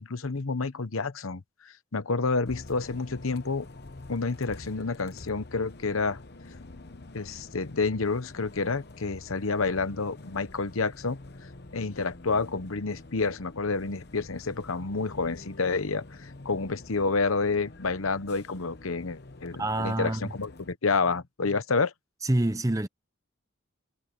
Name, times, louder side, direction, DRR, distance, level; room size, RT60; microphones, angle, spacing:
voice 1, 0.0-3.7 4.1-6.2 7.1-11.2 11.7-21.9, left 4 dB, 90° left, 1.0 m, -29 dB
Bus, 2.5-20.7, left 2 dB, 50° left, 1.0 m, -47 dB
voice 2, 19.6-20.3 22.2-22.9, right 1 dB, 15° right, 0.7 m, -27 dB
head